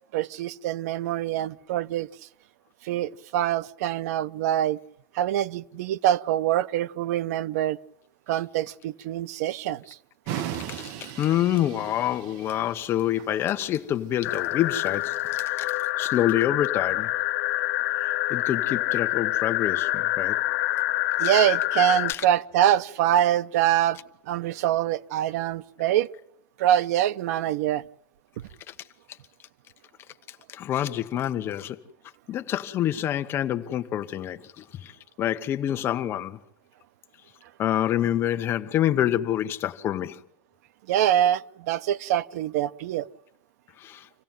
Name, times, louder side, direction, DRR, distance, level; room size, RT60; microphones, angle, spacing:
voice 1, 0.1-2.1 2.8-4.8 5.1-7.8 8.3-10.0 21.2-24.0 24.3-26.1 26.6-27.8 40.9-43.1, right 11 dB, 90° right, 0.9 m, -24 dB
sound 1, 10.3-15.4, right 11 dB, 45° right, 1.2 m, -38 dB
voice 2, 10.5-17.1 18.0-20.4 22.1-22.2 30.5-31.8 32.3-34.9 35.2-36.4 37.6-40.2 43.8-44.0, left 11 dB, 30° left, 1.1 m, -27 dB
sound 2, 14.2-22.1, left 19 dB, 75° left, 1.6 m, -26 dB
27.0 x 16.5 x 9.1 m
cardioid pair, 175°, 8 cm